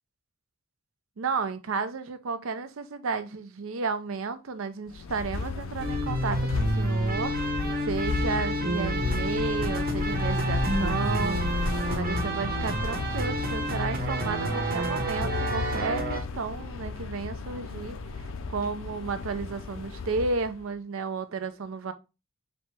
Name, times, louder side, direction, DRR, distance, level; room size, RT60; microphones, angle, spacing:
voice 1, 1.2-21.9, right 4 dB, 80° right, 0.5 m, -33 dB
sound 1, 4.9-20.6, left 4 dB, 70° left, 0.4 m, -34 dB
sound 2, 5.8-16.2, right 1 dB, 50° right, 0.9 m, -29 dB
4.1 x 2.8 x 3.3 m
head